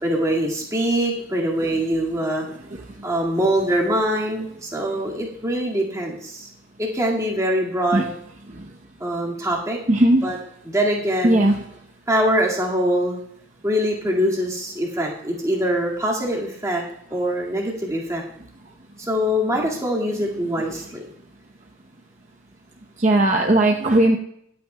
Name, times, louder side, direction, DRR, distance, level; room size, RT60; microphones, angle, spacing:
voice 1, 0.0-2.4 3.0-6.5 6.8-8.1 9.0-9.8 10.2-10.4 10.6-11.4 12.1-13.2 13.6-16.8 17.1-18.2 19.0-21.0, equal, 15° right, -3 dB, 1.9 m, -23 dB
voice 2, 9.9-10.3 11.2-11.6 23.0-24.2, right 1 dB, 35° right, 1 dB, 0.8 m, -18 dB
21.5 x 8.6 x 2.2 m, 0.72 s
head